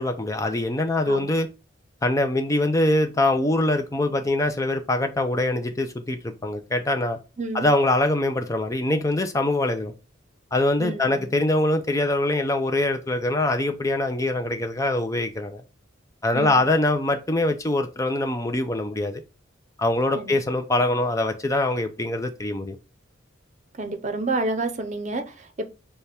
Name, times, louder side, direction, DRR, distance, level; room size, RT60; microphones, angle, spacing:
voice 1, 0.0-1.5 2.0-7.2 7.5-9.9 10.5-15.6 16.2-19.2 19.8-22.8, left 1 dB, 15° left, 0.4 m, -23 dB
voice 2, 10.8-11.3 16.3-16.6 20.1-20.4 23.8-25.6, right 2 dB, 40° right, 0.7 m, -29 dB
6.6 x 2.3 x 3.4 m
head